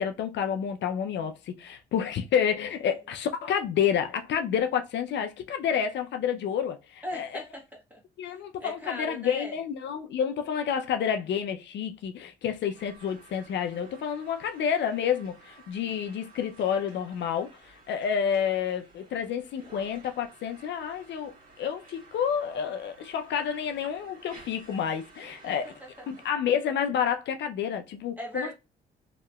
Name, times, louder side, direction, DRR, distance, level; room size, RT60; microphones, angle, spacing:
voice 1, 0.0-7.4 8.2-25.7 26.1-28.5, left 8 dB, 65° left, 0.4 m, -29 dB
voice 2, 7.0-9.6 25.4-25.5 28.2-28.5, left 1 dB, 10° right, 1.2 m, -39 dB
sound 1, 12.7-26.3, right 3 dB, 45° right, 1.6 m, -54 dB
2.9 x 2.8 x 2.2 m
cardioid pair, 90°, 20 cm